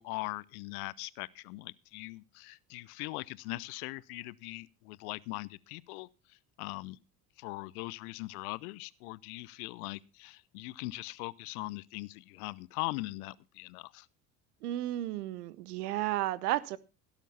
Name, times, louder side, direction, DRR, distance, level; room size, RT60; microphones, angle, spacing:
voice 1, 0.0-6.1 6.6-7.0 7.4-14.1, left 21 dB, 70° left, 0.8 m, -40 dB
voice 2, 14.6-16.8, right 15 dB, 75° right, 1.1 m, -33 dB
17.0 x 7.2 x 5.6 m
hypercardioid pair, 65°, 46 cm